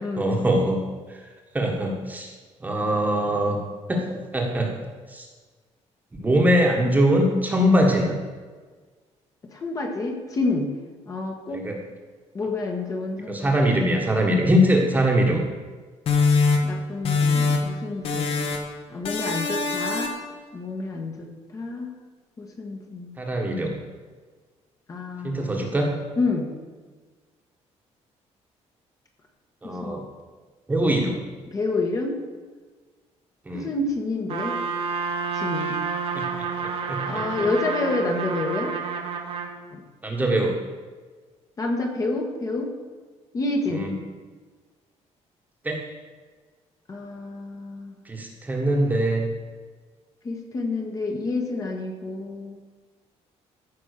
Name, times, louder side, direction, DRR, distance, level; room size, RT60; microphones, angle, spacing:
voice 1, 0.2-1.2 1.5-2.3 2.6-3.6 3.9-4.7 5.1-5.3 6.2-8.2 11.5-11.8 13.3-15.4 23.2-23.7 25.2-26.0 29.6-30.0 30.7-31.2 33.4-33.7 36.1-36.2 36.9-37.2 40.0-40.5 43.7-43.9 45.6-45.8 48.0-49.3, equal, 15° right, 0 dB, 1.5 m, -22 dB
voice 2, 9.5-10.7 11.1-11.6 12.3-13.8 16.6-18.4 18.9-20.1 20.5-21.9 22.4-23.2 24.9-25.7 26.2-26.5 29.6-30.1 31.5-32.2 33.5-34.6 35.3-35.8 37.0-38.7 39.7-39.8 41.6-42.7 43.3-43.9 46.9-47.9 50.2-52.6, left 3 dB, 30° left, 2 dB, 1.4 m, -28 dB
sound 1, 16.1-17.8 18.0-18.7 19.0-20.3, left 4 dB, 55° left, 1.6 m, -23 dB
Trumpet, 34.3-39.6, right 5 dB, 55° right, 1.3 m, -29 dB
14.5 x 5.4 x 6.6 m, 1.4 s
cardioid pair, 175°, 12 cm